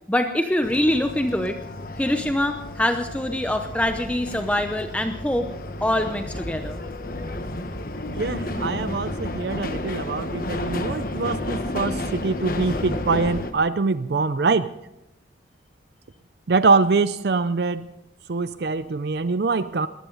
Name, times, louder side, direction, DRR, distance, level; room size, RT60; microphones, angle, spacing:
voice 1, 0.1-1.6 2.0-5.5 5.8-6.8, left 1 dB, 5° left, 6 dB, 0.7 m, -24 dB
sound 1, 0.6-13.5, left 1 dB, 50° left, 1.2 m, -31 dB
voice 2, 8.1-14.7 16.5-17.9 18.3-19.9, right 4 dB, 60° right, 13 dB, 0.5 m, -24 dB
21.0 x 15.0 x 3.9 m, 0.89 s
head